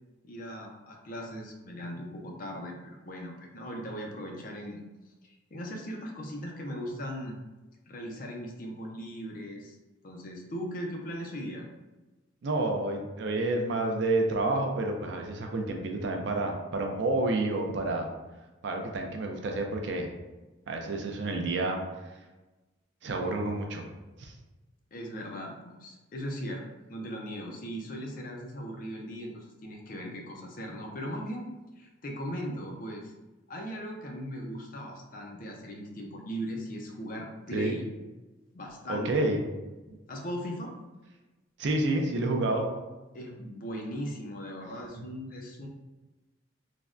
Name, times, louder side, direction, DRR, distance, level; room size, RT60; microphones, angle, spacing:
voice 1, 0.2-7.4 7.9-9.8 10.0-11.7 24.9-26.6 26.9-31.5 31.8-33.1 33.5-37.9 38.5-39.2 40.1-40.7 43.1-45.7, equal, 45° left, 1 dB, 0.4 m, -38 dB
voice 2, 12.4-18.1 18.6-20.1 20.7-21.8 23.0-23.8 24.2-24.3 37.5-37.7 38.9-39.4 39.9-40.0 41.6-42.7, right 2 dB, 65° right, 2 dB, 0.4 m, -29 dB
3.3 x 2.1 x 2.4 m, 1.1 s
head